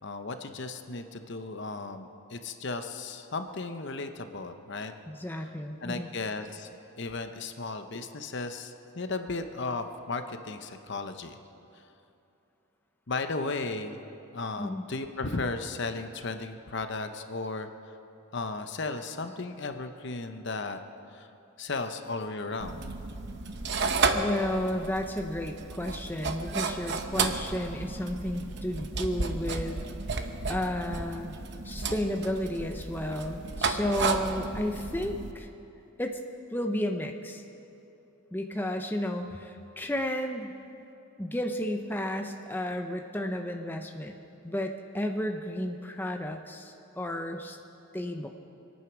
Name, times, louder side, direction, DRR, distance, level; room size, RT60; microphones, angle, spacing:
voice 1, 0.0-4.9 5.8-6.7 7.0-11.4 11.7-11.8 13.1-14.0 14.3-18.0 18.3-20.8 21.1-21.3 21.6-22.8, left 3 dB, 55° left, 8 dB, 0.8 m, -35 dB
voice 2, 5.1-6.1 14.6-14.8 24.1-29.9 30.5-31.4 31.6-35.5 36.0-36.2 36.5-37.4 38.3-40.5 41.2-44.2 44.4-47.6 47.9-48.4, left 1 dB, 10° left, 3 dB, 0.6 m, -32 dB
sound 1, 22.6-35.3, right 4 dB, 50° right, 0.9 m, -32 dB
24.5 x 9.4 x 6.1 m, 2.8 s
head